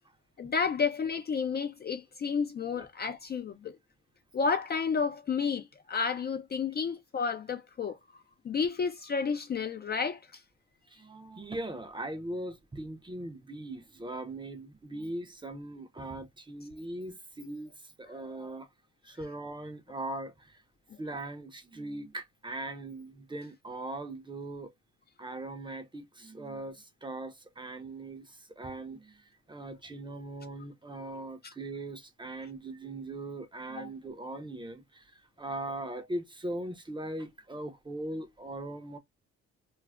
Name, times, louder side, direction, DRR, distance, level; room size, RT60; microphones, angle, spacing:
voice 1, 0.4-3.8 4.3-8.0 8.4-10.4 33.8-33.9, left 5 dB, 35° left, 0.4 m, -31 dB
voice 2, 10.9-17.7 18.0-18.7 19.1-20.6 21.0-24.7 25.2-29.2 29.5-35.0 35.4-39.0, right 1 dB, 15° right, 0.6 m, -40 dB
2.4 x 2.0 x 3.3 m
cardioid pair, 90°, 30 cm